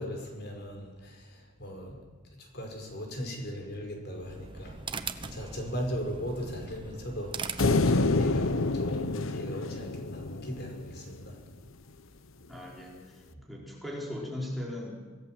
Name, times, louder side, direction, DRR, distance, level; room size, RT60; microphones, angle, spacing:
voice 1, 0.0-2.0 2.3-11.4 13.3-13.4, equal, 55° left, 2 dB, 5.6 m, -38 dB
sound 1, 4.0-8.5, right 4 dB, 25° right, 1.1 m, -41 dB
sound 2, 7.6-11.0, left 3 dB, 85° left, 0.9 m, -27 dB
voice 2, 12.5-15.0, left 1 dB, ahead, -3 dB, 4.6 m, -38 dB
26.0 x 17.5 x 7.7 m, 1.4 s
head